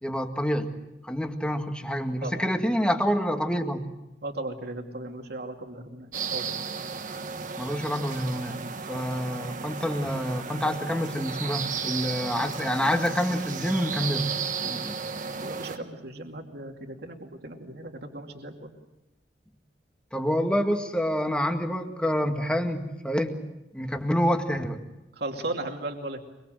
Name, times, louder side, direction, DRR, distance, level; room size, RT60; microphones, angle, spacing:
voice 1, 0.0-0.7 1.0-3.9 7.6-8.6 8.9-14.2 14.6-15.0 20.1-23.4 23.7-24.8, equal, 5° left, 5 dB, 1.9 m, -27 dB
voice 2, 4.2-6.5 8.9-9.1 15.4-18.7 25.2-26.2, right 2 dB, 65° right, 3 dB, 2.6 m, -36 dB
sound 1, 6.1-15.8, right 5 dB, 50° right, 1.5 m, -34 dB
24.5 x 23.5 x 7.8 m, 0.96 s
head